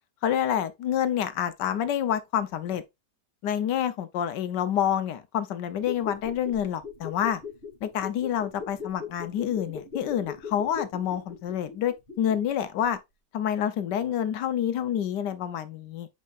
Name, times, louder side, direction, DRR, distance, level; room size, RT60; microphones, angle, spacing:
voice 1, 0.2-2.8 3.4-7.4 7.8-13.0 13.3-16.1, left 9 dB, 75° left, 1.3 m, -28 dB
sound 1, 5.8-12.6 12.8-12.9, left 6 dB, 30° left, 2.2 m, -40 dB
8.5 x 4.7 x 2.4 m
omnidirectional pair, 1.9 m